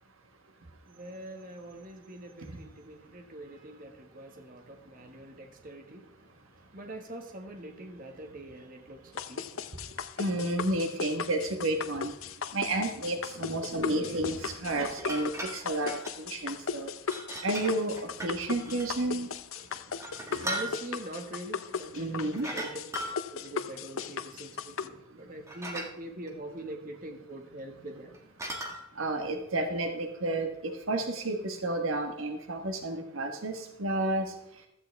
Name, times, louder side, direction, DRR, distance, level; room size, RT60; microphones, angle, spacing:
voice 1, 0.9-6.1 6.7-10.0 19.7-22.8 23.3-28.2 28.9-29.0, right 1 dB, 40° right, 1.7 m, -43 dB
sound 1, 9.2-24.9, left 6 dB, 70° left, 0.7 m, -37 dB
voice 2, 10.2-12.1 12.5-16.9 17.4-18.0 18.2-19.3 20.3-20.5 22.0-22.5 29.0-34.3, right 2 dB, 70° right, 1.4 m, -31 dB
sound 2, 14.9-16.1 17.1-18.9 19.5-21.0 22.3-23.5 25.2-25.3 25.5-25.9 26.3-26.4 28.0-28.8, right 1 dB, 15° right, 1.7 m, -38 dB
15.5 x 13.0 x 3.4 m
head